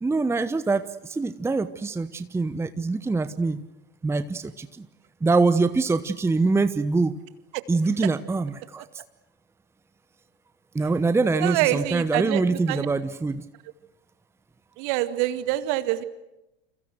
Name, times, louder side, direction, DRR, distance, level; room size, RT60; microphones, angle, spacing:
voice 1, 0.0-3.6 4.0-4.9 5.2-7.2 7.7-8.8 10.7-13.4, right 3 dB, 10° right, 13 dB, 1.0 m, -24 dB
voice 2, 11.4-12.4 12.7-12.9 14.8-16.0, right 15 dB, 50° right, 11 dB, 2.0 m, -25 dB
29.5 x 28.0 x 6.3 m, 0.93 s
figure-of-eight pair, 80°, 32 cm